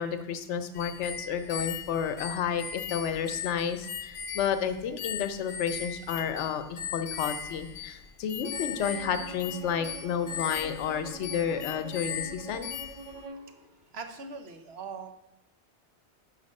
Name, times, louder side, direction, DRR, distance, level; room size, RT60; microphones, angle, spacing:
voice 1, 0.0-12.7, left 7 dB, 90° left, 9 dB, 0.9 m, -31 dB
sound 1, 0.8-13.2, left 8 dB, 60° left, 0.7 m, -38 dB
Bowed string instrument, 8.4-13.5, right 3 dB, 40° right, 0.6 m, -44 dB
voice 2, 13.0-15.1, right 4 dB, 70° right, 6 dB, 1.0 m, -43 dB
5.6 x 4.9 x 5.3 m, 0.88 s
omnidirectional pair, 1.2 m